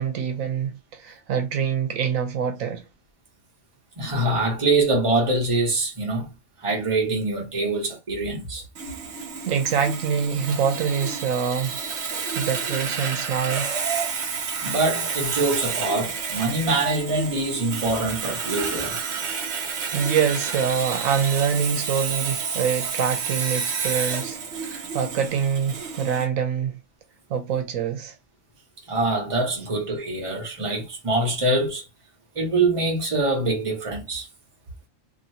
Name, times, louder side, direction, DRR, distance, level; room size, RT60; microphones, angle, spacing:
voice 1, 0.0-2.8 9.4-11.8 12.1-13.7 19.9-26.8 27.3-28.1, right 7 dB, 90° right, 1.1 m, -25 dB
voice 2, 4.0-6.3 6.6-8.6 14.5-19.0 28.9-31.8 32.3-34.3, right 2 dB, 25° right, 1.1 m, -24 dB
Sawing, 8.7-26.2, right 6 dB, 60° right, 1.0 m, -30 dB
3.0 x 2.7 x 2.8 m
omnidirectional pair, 1.4 m